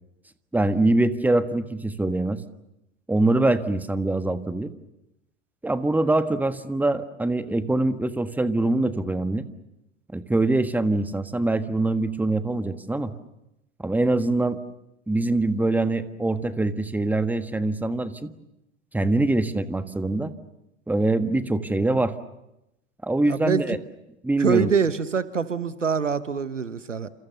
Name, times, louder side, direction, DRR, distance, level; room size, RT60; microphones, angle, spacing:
voice 1, 0.5-2.4 3.1-4.7 5.6-9.5 10.1-13.1 13.8-14.6 15.1-18.3 18.9-20.3 20.9-22.1 23.0-23.8 24.2-24.7, right 2 dB, 5° right, 11 dB, 1.5 m, -23 dB
voice 2, 23.3-23.8 24.4-27.1, right 6 dB, 85° right, 15 dB, 1.2 m, -25 dB
29.5 x 28.0 x 6.9 m, 0.89 s
figure-of-eight pair, 80°, 36 cm